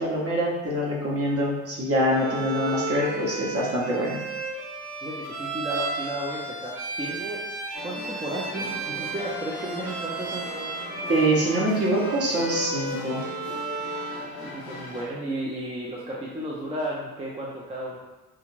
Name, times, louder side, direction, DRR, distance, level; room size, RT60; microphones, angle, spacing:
voice 1, 0.0-4.2 11.1-13.2, right 1 dB, 35° right, -4 dB, 1.0 m, -25 dB
Bowed string instrument, 2.1-14.2, right 3 dB, 70° right, 0.8 m, -33 dB
voice 2, 5.0-7.5 7.8-10.5 14.1-18.0, right 1 dB, 15° right, -5 dB, 0.5 m, -33 dB
sound 1, 7.7-15.0, left 2 dB, 60° left, 0.8 m, -39 dB
2.4 x 2.2 x 3.1 m, 1.1 s
hypercardioid pair, 55°, 40 cm